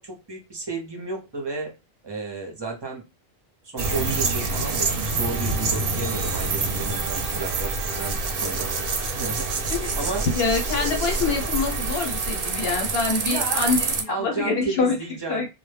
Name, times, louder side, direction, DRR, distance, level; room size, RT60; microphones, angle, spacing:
voice 1, 0.0-1.7 2.0-3.0 3.6-8.7 9.0-10.3 13.3-13.8 14.1-15.5, right 3 dB, 30° right, 1 dB, 0.6 m, -33 dB
sound 1, 3.8-14.0, right 3 dB, 65° right, 0.8 m, -26 dB
voice 2, 10.3-15.0 15.3-15.5, left 4 dB, 75° left, 2 dB, 1.0 m, -25 dB
2.1 x 2.1 x 3.2 m, 0.26 s
omnidirectional pair, 1.0 m